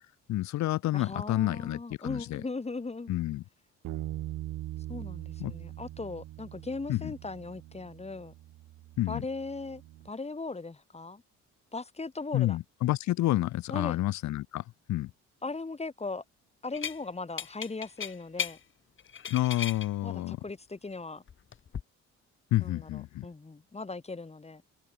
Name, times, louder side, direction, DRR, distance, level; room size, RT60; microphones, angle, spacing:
voice 1, 0.3-2.4 3.1-3.4 5.4-5.5 6.9-7.1 9.0-9.2 12.3-15.1 19.3-20.4 22.5-23.3, left 16 dB, 65° left, 0.5 m, -29 dB
voice 2, 0.9-3.1 4.9-8.3 9.1-11.2 11.7-12.6 13.7-14.0 15.4-16.2 16.6-18.6 20.0-21.2 22.6-24.6, left 3 dB, 20° left, 2.8 m, -38 dB
Bass guitar, 3.8-10.1, right 15 dB, 75° right, 0.9 m, -42 dB
sound 1, 16.7-17.0 17.4-18.6 19.0-19.9 21.3-21.8, left 7 dB, 40° left, 1.3 m, -35 dB
cardioid pair, 90°, 30 cm